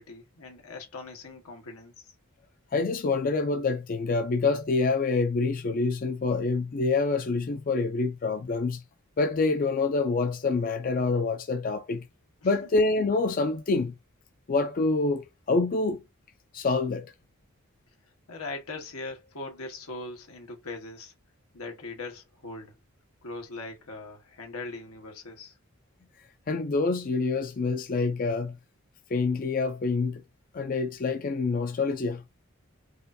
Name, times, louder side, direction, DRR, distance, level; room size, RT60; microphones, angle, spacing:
voice 1, 0.0-2.1 12.4-12.5 18.3-21.1 21.5-22.8 23.2-25.6, left 3 dB, 90° left, 1.3 m, -40 dB
voice 2, 2.7-8.8 9.2-12.0 12.4-13.9 14.5-16.0 16.5-17.1 26.5-28.6 29.1-30.2 30.5-32.2, left 3 dB, 40° left, 0.4 m, -26 dB
4.7 x 2.5 x 2.6 m
head